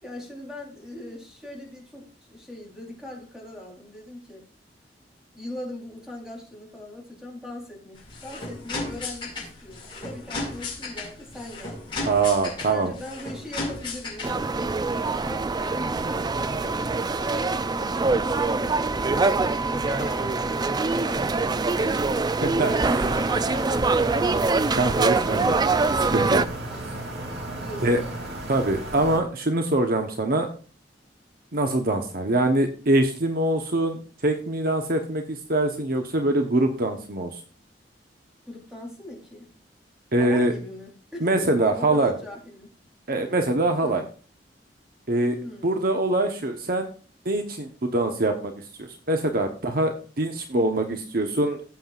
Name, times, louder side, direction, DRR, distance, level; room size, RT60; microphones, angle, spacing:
voice 1, 0.0-4.5 5.3-12.0 12.7-19.4 19.7-21.9 22.8-24.1 26.6-26.9 27.6-28.1 38.5-39.5 40.2-42.7 43.8-44.0 45.3-45.8, left 1 dB, 5° right, -1 dB, 3.8 m, -40 dB
sound 1, 7.9-14.5, left 2 dB, 30° left, 5.4 m, -35 dB
voice 2, 12.0-12.9 22.4-22.7 24.7-25.6 26.1-26.4 27.8-28.0 28.5-30.5 31.5-37.3 40.1-40.5 41.2-42.1 43.1-44.0 45.1-46.9 47.2-48.5 48.8-51.6, right 2 dB, 55° right, 4 dB, 1.1 m, -24 dB
sound 2, 14.2-26.5, right 3 dB, 25° right, 0.4 m, -24 dB
sound 3, 22.6-29.2, right 1 dB, 75° right, 2.8 m, -36 dB
17.5 x 7.7 x 2.5 m, 0.39 s
head